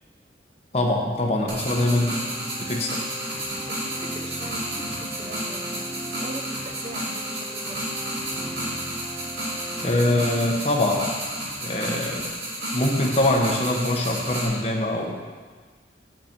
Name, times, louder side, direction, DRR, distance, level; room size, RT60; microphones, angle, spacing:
voice 1, 0.7-2.2 2.7-3.0 9.8-11.1 11.6-12.3 12.7-15.1, left 1 dB, 35° left, 0 dB, 1.1 m, -23 dB
sound 1, 1.5-14.4, right 1 dB, 70° right, 2.8 m, -32 dB
sound 2, 1.8-10.5, right 1 dB, 15° right, 0.4 m, -38 dB
voice 2, 3.7-8.0, right 1 dB, 35° right, 4 dB, 0.8 m, -41 dB
8.2 x 8.0 x 4.5 m, 1.5 s
head